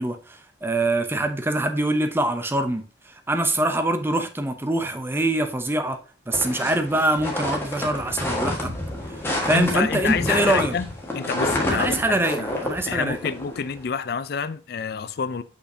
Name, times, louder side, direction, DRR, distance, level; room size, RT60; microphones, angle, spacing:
voice 1, 0.0-2.8 3.3-6.0 6.3-8.7 9.5-10.7 11.7-13.2, right 1 dB, 10° right, 0.6 m, -24 dB
sound 1, 6.3-13.8, left 1 dB, 10° left, 1.5 m, -29 dB
voice 2, 9.5-10.9 11.1-12.4 12.9-15.4, left 6 dB, 55° left, 0.4 m, -28 dB
6.4 x 5.7 x 2.7 m
head